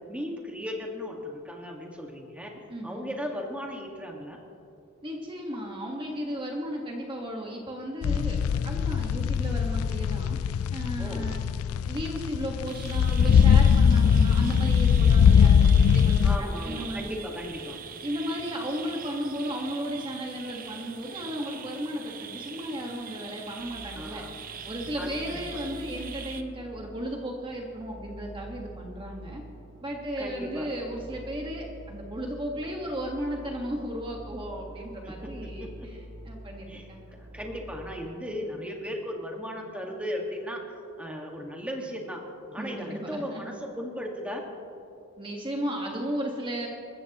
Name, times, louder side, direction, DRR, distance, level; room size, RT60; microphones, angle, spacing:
voice 1, 0.0-2.5 2.8-4.4 11.0-11.3 16.2-17.8 24.0-24.3 25.0-25.6 30.2-30.7 35.0-35.9 36.7-36.9 37.2-40.7 41.0-42.2 42.5-44.5, equal, 5° right, 0 dB, 1.7 m, -36 dB
voice 2, 2.7-3.1 5.0-10.4 10.7-11.4 11.8-17.2 18.0-29.4 29.8-37.1 42.6-43.4 45.2-46.7, equal, 25° right, 0 dB, 1.4 m, -35 dB
sound 1, 8.0-16.4, left 7 dB, 75° left, 0.3 m, -21 dB
sound 2, 12.7-26.4, right 7 dB, 40° right, 0.8 m, -42 dB
sound 3, 23.6-38.0, right 1 dB, 80° right, 2.8 m, -45 dB
28.0 x 14.0 x 3.0 m, 2.7 s
head